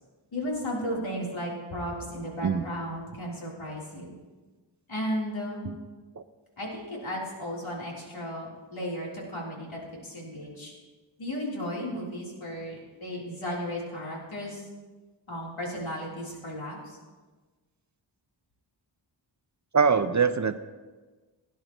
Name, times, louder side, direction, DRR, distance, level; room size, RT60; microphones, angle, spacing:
voice 1, 0.3-4.1 4.9-5.6 6.6-10.7 11.2-14.7 15.3-16.8, equal, 80° left, -4 dB, 3.6 m, -34 dB
voice 2, 19.7-20.6, right 5 dB, 40° right, 11 dB, 0.5 m, -23 dB
17.5 x 10.5 x 3.0 m, 1.3 s
wide cardioid pair, 75°, 47 cm